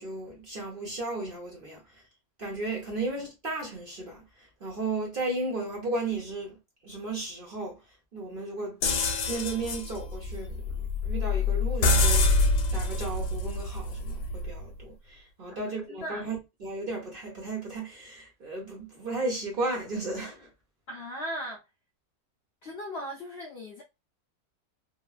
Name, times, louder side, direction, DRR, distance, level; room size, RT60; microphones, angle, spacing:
voice 1, 0.0-2.0 2.4-6.6 6.8-7.8 8.1-8.8 9.3-12.5 12.7-20.5, right 2 dB, 45° right, 0.8 m, -34 dB
sound 1, 8.8-14.6, left 2 dB, 90° left, 1.2 m, -26 dB
voice 2, 15.5-16.3 20.9-21.6 22.6-23.8, equal, 65° left, 0.6 m, -38 dB
3.0 x 2.1 x 2.3 m
omnidirectional pair, 1.7 m